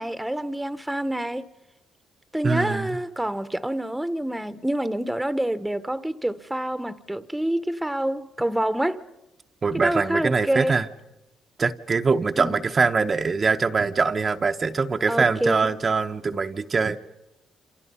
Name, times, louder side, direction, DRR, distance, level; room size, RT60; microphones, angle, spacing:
voice 1, 0.0-1.5 2.3-9.1 9.7-10.8 12.4-12.6 15.1-15.7, right 1 dB, 5° right, 1.0 m, -27 dB
voice 2, 2.4-3.0 9.6-10.9 11.6-17.0, right 4 dB, 35° right, 0.8 m, -23 dB
28.0 x 26.5 x 5.6 m
cardioid pair, 90°, 0 cm